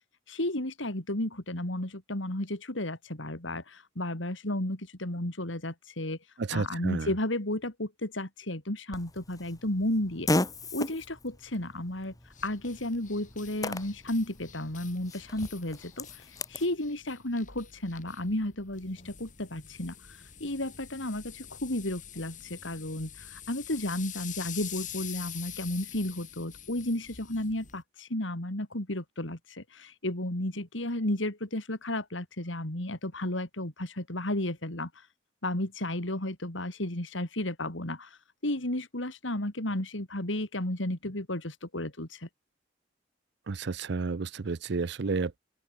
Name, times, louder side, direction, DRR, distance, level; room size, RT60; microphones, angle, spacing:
voice 1, 0.3-6.2 6.5-10.3 10.7-12.1 12.4-16.1 16.5-34.9 35.4-42.3, left 1 dB, 80° left, 3.7 m, -33 dB
voice 2, 6.5-7.1 43.5-45.4, right 4 dB, 60° right, 0.6 m, -31 dB
Fart, 8.9-16.7, left 2 dB, 20° left, 1.5 m, -36 dB
sound 1, 12.3-27.8, left 10 dB, 40° left, 5.1 m, -46 dB
open air
head